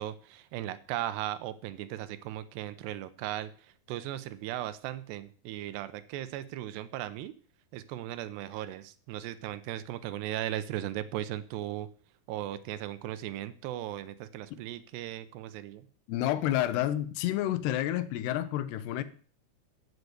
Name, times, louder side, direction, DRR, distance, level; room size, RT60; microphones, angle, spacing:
voice 1, 0.0-3.5 3.9-7.3 7.7-11.9 12.3-15.8, right 13 dB, 85° right, 14 dB, 3.0 m, -37 dB
voice 2, 16.1-19.0, left 13 dB, 85° left, 14 dB, 2.9 m, -29 dB
13.0 x 6.8 x 8.0 m, 0.43 s
omnidirectional pair, 4.8 m